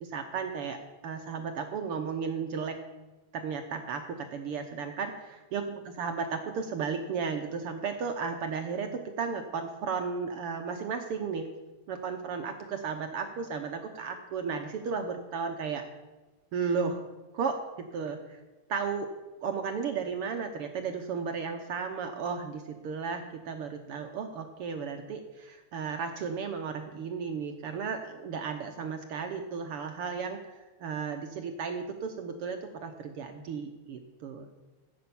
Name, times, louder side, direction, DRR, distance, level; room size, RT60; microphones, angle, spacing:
voice 1, 0.0-2.8 3.3-11.5 11.9-15.8 16.5-17.1 17.3-18.4 18.7-19.1 19.4-30.4 30.8-34.5, right 5 dB, 65° right, 5 dB, 1.5 m, -34 dB
15.0 x 8.7 x 7.0 m, 1.2 s
omnidirectional pair, 3.4 m